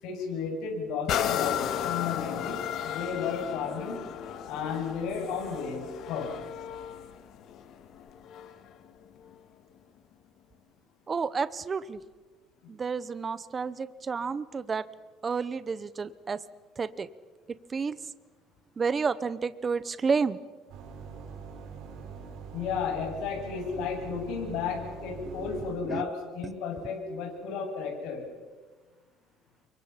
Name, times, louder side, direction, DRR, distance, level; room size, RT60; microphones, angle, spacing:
voice 1, 0.0-4.1 4.5-6.4 22.5-28.2, left 6 dB, 70° left, 0 dB, 7.4 m, -33 dB
sound 1, 1.1-8.7 9.3-9.4, left 9 dB, 50° left, 1.7 m, -34 dB
voice 2, 11.1-12.0 12.7-14.9 15.2-16.4 16.8-17.1 17.7-18.0 18.8-20.4 25.2-25.5 25.9-26.0, right 5 dB, 20° right, 16 dB, 0.7 m, -30 dB
sound 2, 20.7-25.7, right 5 dB, 65° right, 5.6 m, -43 dB
29.0 x 24.0 x 5.8 m, 1.3 s
cardioid pair, 165°, 0 cm